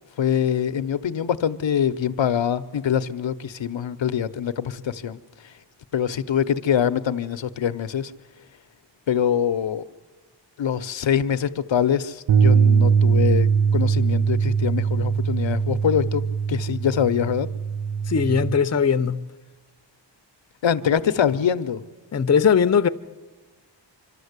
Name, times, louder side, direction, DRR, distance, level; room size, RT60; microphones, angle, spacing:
voice 1, 0.2-5.2 5.9-8.1 9.1-9.8 10.6-17.5 20.6-21.8, left 8 dB, 85° left, 0.8 m, -24 dB
sound 1, 12.3-18.5, right 6 dB, 85° right, 0.9 m, -21 dB
voice 2, 18.1-19.2 22.1-22.9, left 6 dB, 35° left, 0.6 m, -19 dB
26.0 x 12.5 x 8.1 m
wide cardioid pair, 120°, 45 cm